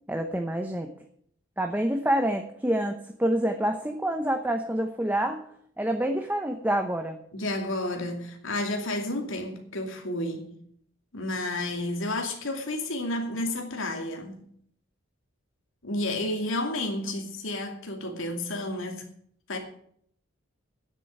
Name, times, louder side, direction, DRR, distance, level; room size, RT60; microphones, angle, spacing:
voice 1, 0.1-0.9 1.6-5.4 5.8-7.2, right 1 dB, 10° right, 0.8 m, -27 dB
voice 2, 7.3-10.5 11.1-14.4 15.8-19.1 19.5-19.6, left 1 dB, 75° left, 2.5 m, -31 dB
9.9 x 7.6 x 9.1 m
head